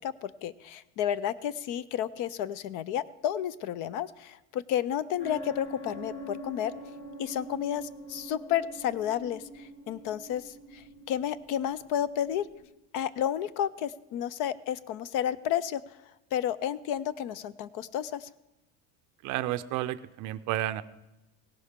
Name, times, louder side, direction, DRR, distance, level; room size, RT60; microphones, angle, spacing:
voice 1, 0.0-6.7 7.2-12.5 12.9-16.0 16.3-18.3, left 10 dB, 50° left, 19 dB, 0.4 m, -31 dB
sound 1, 5.2-12.6, right 1 dB, 30° left, 2.4 m, -45 dB
voice 2, 19.2-20.8, right 14 dB, 45° right, 12 dB, 0.5 m, -31 dB
17.5 x 11.0 x 3.6 m, 0.97 s
cardioid pair, 175°, 41 cm